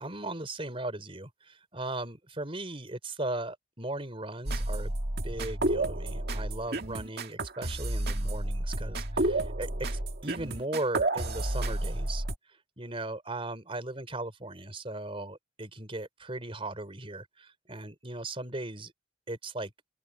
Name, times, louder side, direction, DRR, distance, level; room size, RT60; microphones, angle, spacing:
voice 1, 0.0-4.9 5.2-12.2 12.8-18.9 19.3-19.7, right 2 dB, 30° right, 4.5 m, -37 dB
sound 1, 4.5-12.4, right 1 dB, 60° right, 2.2 m, -31 dB
open air
head